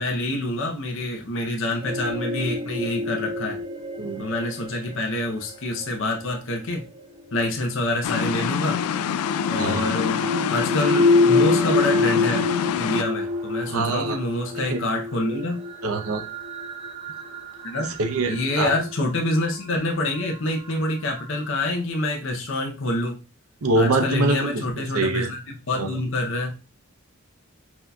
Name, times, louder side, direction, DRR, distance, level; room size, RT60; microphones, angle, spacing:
voice 1, 0.0-3.6 4.2-6.8 7.3-8.8 9.5-10.2 10.5-12.4 12.8-15.6 17.6-17.9 18.3-23.2 23.8-26.5, left 1 dB, 60° left, 1 dB, 0.7 m, -26 dB
sound 1, 1.8-7.8 9.0-21.4, left 3 dB, 25° right, 1.0 m, -27 dB
sound 2, 8.0-13.0, left 7 dB, 90° left, 0.3 m, -26 dB
voice 2, 13.7-14.2 14.5-14.8 15.8-16.2 17.8-18.7 23.6-24.6 24.9-25.3 25.8-25.9, right 2 dB, 85° right, 5 dB, 0.7 m, -24 dB
5.9 x 2.8 x 2.3 m, 0.31 s
head